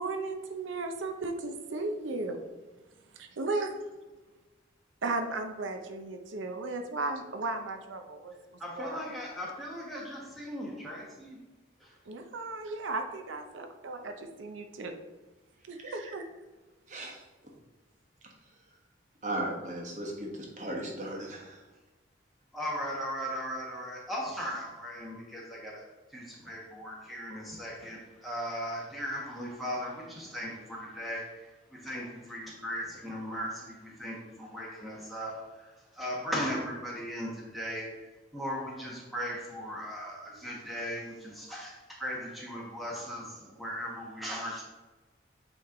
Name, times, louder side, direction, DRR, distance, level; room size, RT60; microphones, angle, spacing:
voice 1, 0.0-2.4 3.2-3.7 5.0-8.3 8.7-9.0 12.1-14.9 15.7-16.2, right 3 dB, 85° right, 5 dB, 0.6 m, -35 dB
voice 2, 8.6-11.4 11.8-11.9 22.5-35.7 35.9-37.9 38.3-44.6, equal, ahead, -4 dB, 1.2 m, -38 dB
voice 3, 15.7-16.2 16.9-17.5 19.2-21.6, right 1 dB, 40° right, -1 dB, 1.2 m, -37 dB
8.4 x 3.1 x 3.8 m, 1.2 s
head